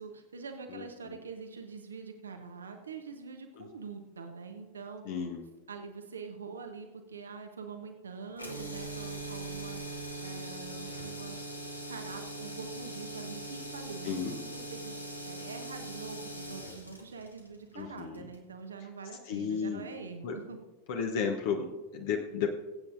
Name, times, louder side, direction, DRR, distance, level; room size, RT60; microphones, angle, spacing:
voice 1, 0.0-5.3 5.7-11.4 11.9-20.6, right 5 dB, 70° right, 5 dB, 1.0 m, -44 dB
voice 2, 0.7-1.1 3.6-3.7 5.1-5.5 14.0-14.4 17.7-18.3 19.3-19.8 20.2-20.4 20.9-22.5, left 6 dB, 50° left, 3 dB, 1.0 m, -33 dB
sound 1, 8.3-18.5, right 1 dB, 85° left, 1.3 m, -41 dB
22.5 x 8.5 x 2.6 m, 1.2 s
figure-of-eight pair, 90°, 0 cm